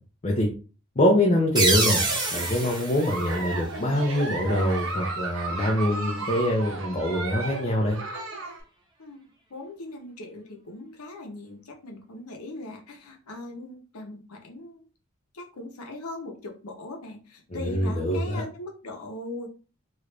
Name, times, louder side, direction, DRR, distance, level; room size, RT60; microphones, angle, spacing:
voice 1, 1.0-2.0 2.3-8.0 17.5-18.4, left 1 dB, 30° left, -2 dB, 0.5 m, -24 dB
sound 1, 1.6-4.1, right 3 dB, 20° right, 0.8 m, -27 dB
Giggle, 1.9-8.6, right 3 dB, 65° right, 0.8 m, -34 dB
voice 2, 9.5-14.8 15.3-19.5, left 2 dB, 90° left, 2 dB, 0.8 m, -39 dB
3.1 x 2.4 x 3.2 m, 0.35 s
head